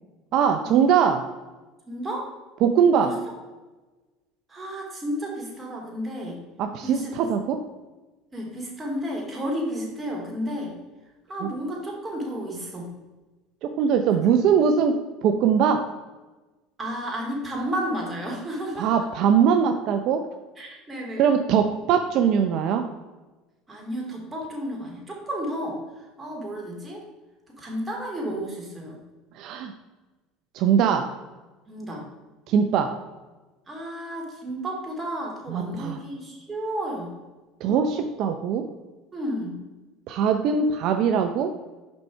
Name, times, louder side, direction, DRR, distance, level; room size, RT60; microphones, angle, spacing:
voice 1, 0.3-1.2 2.6-3.1 6.6-7.6 11.4-11.5 13.6-15.8 18.8-20.2 21.2-22.9 29.3-29.7 30.5-31.1 32.5-32.9 35.5-36.0 37.6-38.7 40.1-41.5, right 7 dB, 60° right, 6 dB, 0.5 m, -21 dB
voice 2, 1.9-2.3 3.0-3.1 4.5-6.4 6.8-7.3 8.3-10.8 11.3-12.9 16.8-18.9 20.6-21.3 23.7-27.0 27.6-29.0 31.7-32.0 33.7-37.2 39.1-39.6, equal, 20° right, -1 dB, 2.4 m, -32 dB
5.6 x 5.2 x 4.5 m, 1.2 s
supercardioid pair, 95°, 0 cm